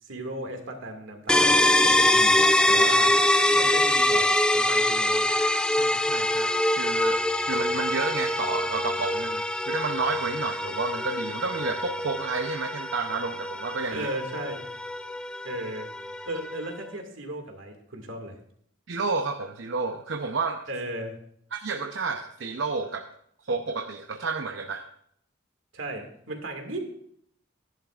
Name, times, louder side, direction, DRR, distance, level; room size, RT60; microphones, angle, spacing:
voice 1, 0.0-3.2 3.5-5.6 13.9-14.6 15.4-15.9 16.3-18.4 20.7-21.2 25.7-26.8, right 1 dB, 85° right, 3 dB, 2.1 m, -36 dB
sound 1, 1.3-16.9, left 1 dB, 5° left, 0.4 m, -24 dB
voice 2, 5.8-14.1 18.9-20.6 21.5-23.1 23.5-24.9, right 4 dB, 70° right, 4 dB, 0.7 m, -31 dB
14.5 x 10.5 x 2.5 m, 0.69 s
head